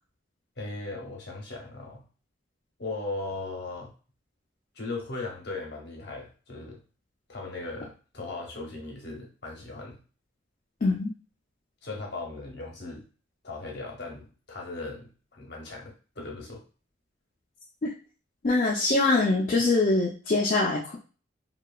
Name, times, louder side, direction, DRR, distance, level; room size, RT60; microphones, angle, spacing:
voice 1, 0.6-2.0 2.8-3.9 4.7-6.8 7.3-10.0 11.8-13.1 13.4-16.6, left 3 dB, 55° left, -1 dB, 0.8 m, -38 dB
voice 2, 18.4-21.0, left 2 dB, 40° left, -4 dB, 0.4 m, -23 dB
2.8 x 2.2 x 2.3 m, 0.36 s
head